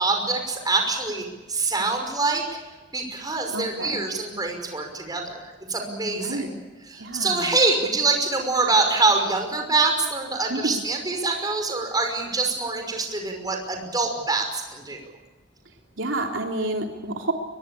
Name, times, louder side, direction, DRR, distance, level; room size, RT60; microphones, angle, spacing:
voice 1, 0.0-2.4 2.9-6.4 6.9-15.0, right 3 dB, 20° right, 3 dB, 5.6 m, -25 dB
voice 2, 3.5-4.0 6.1-6.5 7.0-7.5 10.5-10.8 16.0-17.3, right 2 dB, 80° right, 2 dB, 3.3 m, -29 dB
23.0 x 22.5 x 8.7 m, 1.2 s
head